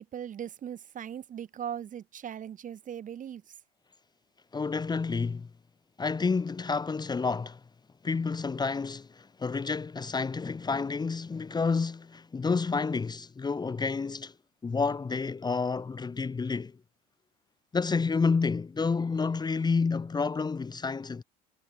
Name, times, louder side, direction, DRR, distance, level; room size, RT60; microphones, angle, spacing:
voice 1, 0.0-3.4, right 9 dB, 45° right, 2.4 m, -39 dB
voice 2, 4.5-5.5 6.0-7.6 8.0-14.3 14.6-16.8 17.7-21.2, left 4 dB, 20° left, 1.2 m, -29 dB
hypercardioid pair, 75°, 19 cm